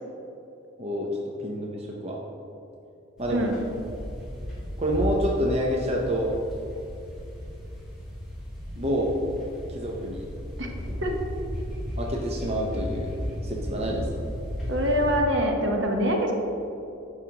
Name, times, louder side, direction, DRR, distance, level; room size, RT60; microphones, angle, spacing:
voice 1, 1.4-2.2 3.2-3.5 4.8-6.3 8.8-9.2 9.7-10.3 12.0-13.1 13.4-14.1, equal, 30° right, -1 dB, 0.6 m, -27 dB
sound 1, 3.2-15.2, equal, 5° right, 1.5 m, -35 dB
voice 2, 14.7-16.3, equal, 65° right, 2 dB, 0.9 m, -24 dB
8.9 x 6.3 x 2.9 m, 2.8 s
head